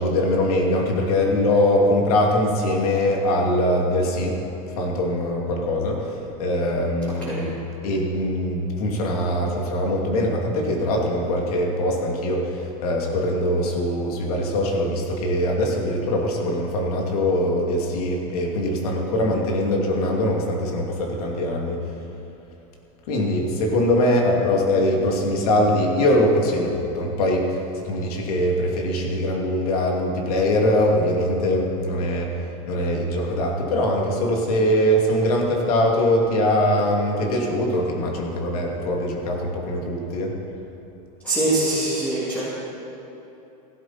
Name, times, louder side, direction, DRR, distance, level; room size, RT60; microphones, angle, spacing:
voice 1, 0.0-6.1 6.4-7.6 7.8-21.8 23.1-40.4, left 1 dB, 75° left, 0 dB, 2.7 m, -22 dB
voice 2, 41.2-42.4, right 2 dB, 5° left, -9 dB, 2.9 m, -23 dB
16.5 x 12.5 x 4.4 m, 3.0 s
supercardioid pair, 145°, 19 cm